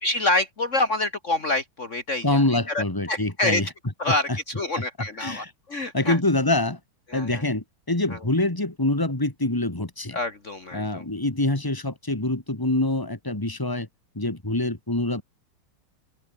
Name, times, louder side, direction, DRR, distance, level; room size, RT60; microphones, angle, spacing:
voice 1, 0.0-3.6 4.0-6.2 7.1-7.4 8.1-8.2 10.1-11.0, left 2 dB, 45° left, 2.2 m, -27 dB
voice 2, 2.2-3.7 4.1-4.2 5.2-5.5 5.8-6.8 7.1-10.2 10.7-13.9 14.1-15.2, left 2 dB, 10° left, 2.9 m, -25 dB
open air
omnidirectional pair, 1.9 m